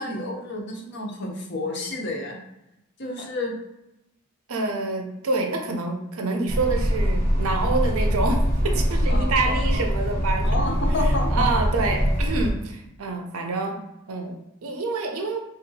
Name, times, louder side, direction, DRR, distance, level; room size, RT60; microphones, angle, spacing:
voice 1, 0.0-2.4 3.0-3.5 9.1-9.5 10.4-11.5, left 2 dB, 50° left, 1 dB, 0.6 m, -30 dB
voice 2, 4.5-10.8 11.3-13.8 14.1-15.4, right 3 dB, 75° right, 3 dB, 0.6 m, -27 dB
sound 1, 6.5-12.5, equal, 10° left, 0.7 m, -23 dB
3.4 x 2.7 x 2.7 m, 0.89 s
head